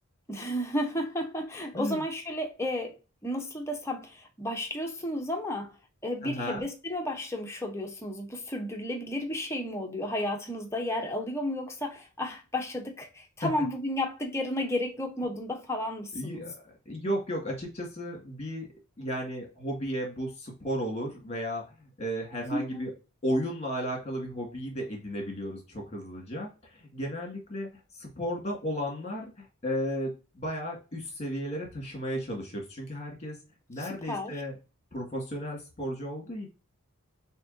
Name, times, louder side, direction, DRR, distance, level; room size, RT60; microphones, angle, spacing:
voice 1, 0.3-2.9 3.2-5.8 6.0-16.5 22.5-22.9 33.8-34.3, left 1 dB, 15° left, 0.8 m, -33 dB
voice 2, 6.2-6.7 13.4-13.5 16.1-18.7 19.0-22.9 23.2-26.5 26.7-27.7 28.0-33.4 33.7-34.5 34.9-36.5, equal, 30° left, 1.9 m, -34 dB
6.1 x 2.9 x 2.6 m
head